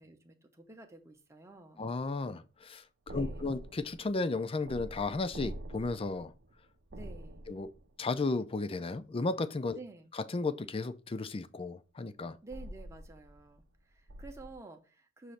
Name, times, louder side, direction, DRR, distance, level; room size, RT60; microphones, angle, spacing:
voice 1, 0.0-1.9 3.1-3.6 6.9-7.4 9.7-10.1 12.4-15.3, right 3 dB, 15° right, 0.8 m, -51 dB
voice 2, 1.8-6.3 7.5-7.7 8.0-9.8 10.3-12.4, left 3 dB, 30° left, 0.4 m, -34 dB
sound 1, 3.1-8.1 12.5-13.8 14.1-14.6, right 1 dB, 60° right, 0.7 m, -46 dB
6.4 x 3.1 x 5.6 m
head